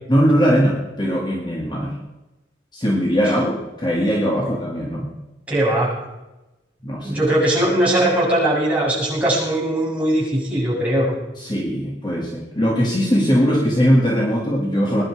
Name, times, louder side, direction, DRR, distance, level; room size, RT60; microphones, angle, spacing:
voice 1, 0.1-2.0 2.7-5.1 6.8-7.2 11.4-15.0, equal, 25° left, -2 dB, 2.1 m, -20 dB
voice 2, 5.5-5.9 7.0-11.1, right 1 dB, 5° right, -7 dB, 7.4 m, -20 dB
22.0 x 11.0 x 4.9 m, 1.0 s
head